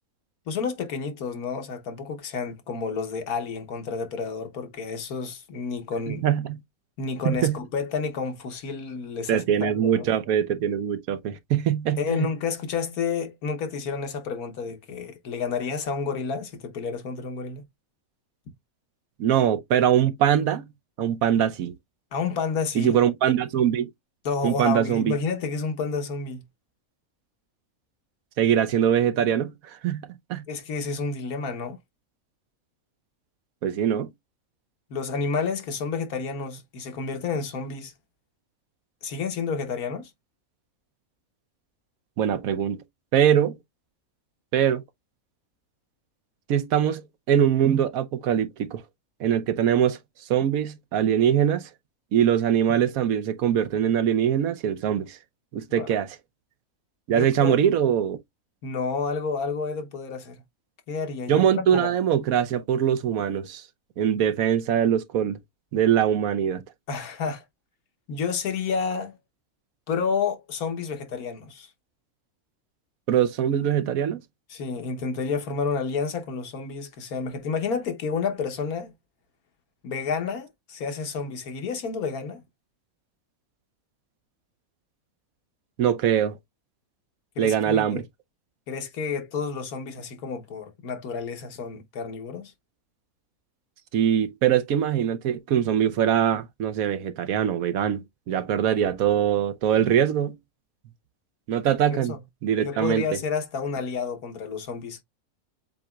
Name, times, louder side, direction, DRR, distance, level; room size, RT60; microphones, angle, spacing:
voice 1, 0.5-6.2 7.0-10.1 12.0-17.6 22.1-23.0 24.2-26.4 30.5-31.8 34.9-37.9 39.0-40.1 55.7-55.9 57.1-57.7 58.6-60.4 60.9-61.9 66.9-67.4 68.1-69.2 69.9-71.7 74.5-78.9 79.8-82.4 87.4-88.0 88.7-92.5 101.9-102.2 102.6-105.0, left 5 dB, 85° left, 1.6 m, -30 dB
voice 2, 6.1-6.6 7.2-7.6 9.3-12.3 19.2-20.7 21.0-21.7 22.7-23.9 24.4-25.1 28.4-29.5 29.8-30.4 33.6-34.1 42.2-42.8 43.1-43.6 44.5-44.8 46.5-48.8 49.2-50.0 50.3-51.7 52.1-55.2 55.5-56.1 57.1-58.2 61.3-63.6 64.0-65.4 65.7-66.6 73.1-74.2 85.8-86.4 87.4-88.0 93.9-98.0 98.3-100.4 101.5-102.2 102.4-103.2, right 9 dB, 80° right, 1.1 m, -22 dB
7.5 x 2.9 x 2.3 m
omnidirectional pair, 1.5 m